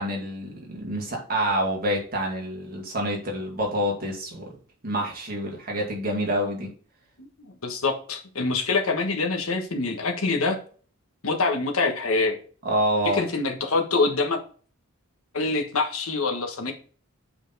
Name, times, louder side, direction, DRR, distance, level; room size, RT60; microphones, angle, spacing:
voice 1, 0.0-4.5 4.8-6.7 12.6-13.2, right 1 dB, 40° right, -1 dB, 2.4 m, -27 dB
voice 2, 7.2-10.6 11.2-12.4 13.0-14.4 15.3-16.7, left 3 dB, 70° left, 4 dB, 1.4 m, -25 dB
8.1 x 4.5 x 4.1 m, 0.42 s
head